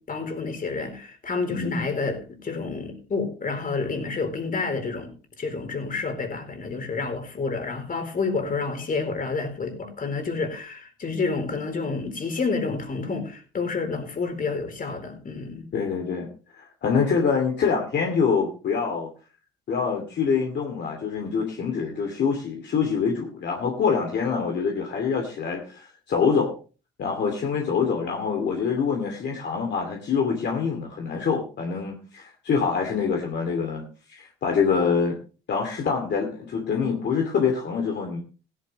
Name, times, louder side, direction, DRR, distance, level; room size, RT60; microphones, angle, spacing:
voice 1, 0.0-15.7, left 4 dB, 45° left, 4.4 m, -29 dB
voice 2, 1.5-1.8 15.7-16.3 16.5-19.1 19.7-26.5 27.0-33.8 34.1-35.2 35.5-38.2, left 6 dB, 60° left, 2.7 m, -25 dB
16.5 x 11.0 x 3.2 m
cardioid pair, 90°, 20 cm